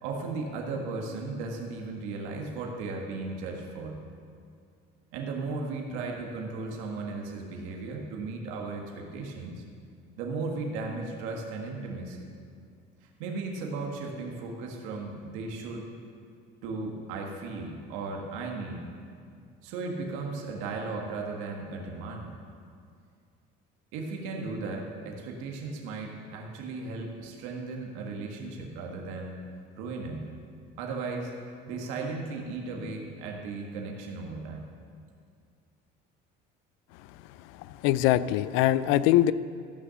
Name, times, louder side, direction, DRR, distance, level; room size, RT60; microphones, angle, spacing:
voice 1, 0.0-4.0 5.1-9.6 10.2-12.3 13.2-15.9 16.6-18.8 19.6-22.3 23.9-29.4 29.7-30.3 30.8-31.3 31.7-34.7, right 3 dB, 80° right, 1 dB, 1.5 m, -36 dB
voice 2, 37.8-39.3, left 13 dB, 75° left, 16 dB, 0.4 m, -22 dB
13.0 x 6.1 x 6.9 m, 2.3 s
cardioid pair, 130°, 21 cm